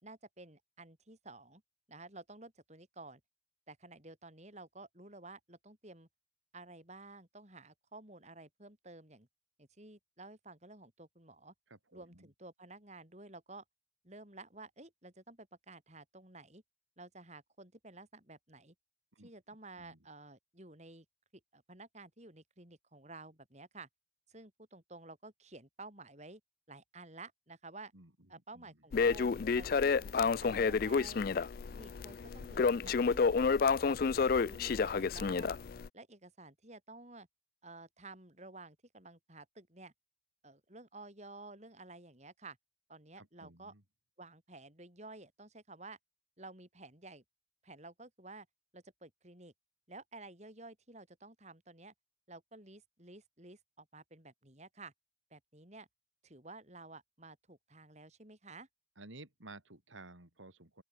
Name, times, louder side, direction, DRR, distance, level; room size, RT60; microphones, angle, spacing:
voice 1, 0.0-1.6 1.9-3.2 3.7-6.1 6.5-9.3 9.6-11.5 11.9-13.6 14.0-16.6 17.0-18.7 19.2-21.0 21.5-23.9 24.3-26.4 26.7-27.9 28.3-31.3 31.7-33.2 33.5-35.6 35.9-37.3 37.6-39.9 40.4-42.6 42.9-43.7 44.2-46.0 46.4-47.2 47.6-48.5 48.7-49.5 49.9-51.9 52.3-54.9 55.3-55.9 56.2-58.7, right 2 dB, 35° right, 4.6 m, -52 dB
voice 2, 11.7-12.3 19.1-19.3 19.8-20.0 27.9-28.8 43.2-43.8 59.0-60.8, right 2 dB, 80° right, 4.6 m, -54 dB
Crackle, 28.9-35.9, left 5 dB, 50° left, 0.4 m, -30 dB
open air
head